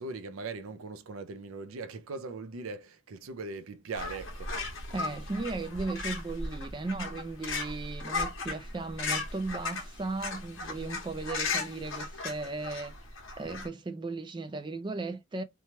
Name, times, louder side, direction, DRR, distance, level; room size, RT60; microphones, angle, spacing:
voice 1, 0.0-4.5, right 3 dB, 80° right, 0.5 m, -40 dB
sound 1, 3.9-13.7, left 3 dB, 70° left, 1.0 m, -36 dB
voice 2, 4.9-12.9 13.4-15.4, right 3 dB, 20° right, 0.3 m, -36 dB
3.0 x 2.2 x 2.8 m
head